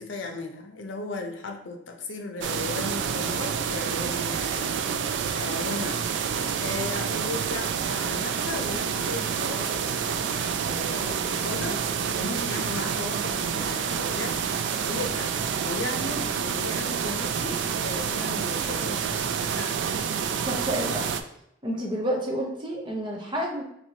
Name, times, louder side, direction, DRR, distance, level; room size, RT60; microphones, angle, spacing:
voice 1, 0.0-6.1 6.6-19.9, left 2 dB, 80° left, 4 dB, 0.6 m, -36 dB
sound 1, 2.4-21.2, right 7 dB, 70° right, 0.3 m, -28 dB
voice 2, 20.4-21.0 21.6-23.6, right 1 dB, 25° right, -2 dB, 0.7 m, -29 dB
4.4 x 2.9 x 2.8 m, 0.76 s
head